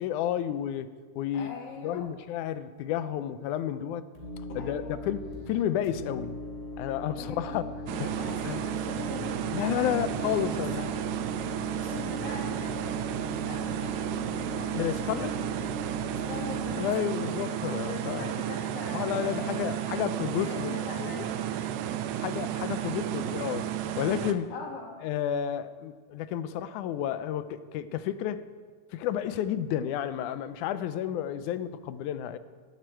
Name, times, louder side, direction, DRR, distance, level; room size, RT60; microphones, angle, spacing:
voice 1, 0.0-1.6 1.8-4.1 4.6-6.4 6.8-7.6 8.5-8.6 9.5-10.9 14.7-15.3 16.8-18.3 18.9-21.3 22.2-24.5 25.0-28.4 28.9-32.4, left 10 dB, 90° left, 13 dB, 2.1 m, -31 dB
voice 2, 1.3-2.1 4.6-5.0 7.2-10.9 11.8-15.9 16.3-17.6 17.9-19.8 20.4-22.0 22.4-22.5 24.5-25.0, left 4 dB, 60° left, 0 dB, 2.8 m, -43 dB
sound 1, 4.1-5.3 5.8-16.7, left 1 dB, 20° left, 4.1 m, -40 dB
sound 2, 4.9-11.6, right 2 dB, 55° right, 1.7 m, -52 dB
sound 3, 7.9-24.3, right 11 dB, 80° right, 2.0 m, -33 dB
18.5 x 12.5 x 4.6 m, 1.5 s
omnidirectional pair, 3.4 m